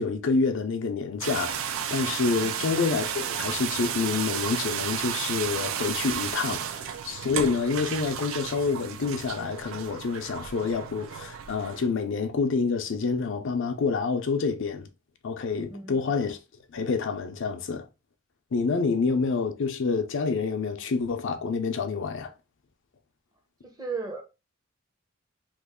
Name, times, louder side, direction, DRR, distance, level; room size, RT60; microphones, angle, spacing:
voice 1, 0.0-14.9 15.2-16.4 16.7-17.9 18.5-22.3, left 4 dB, 65° left, 0.5 m, -28 dB
sound 1, 1.2-11.9, right 8 dB, 75° right, 0.4 m, -33 dB
voice 2, 15.7-16.2 23.6-24.2, right 4 dB, 20° right, 0.7 m, -36 dB
3.0 x 2.4 x 3.6 m
head